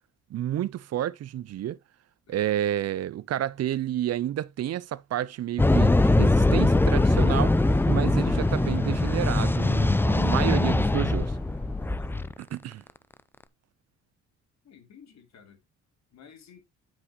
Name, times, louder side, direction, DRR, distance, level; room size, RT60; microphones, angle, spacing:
voice 1, 0.3-1.8 2.3-11.4 12.4-12.8, right 12 dB, 55° right, 0.6 m, -30 dB
voice 2, 2.3-2.6 12.0-12.3 14.6-15.6 16.1-16.6, left 6 dB, 65° left, 3.3 m, -53 dB
sound 1, 5.6-12.3, left 2 dB, 5° left, 0.5 m, -22 dB
sound 2, 7.1-12.7, left 2 dB, 30° left, 5.1 m, -51 dB
9.6 x 6.1 x 2.9 m
cardioid pair, 90°, 30 cm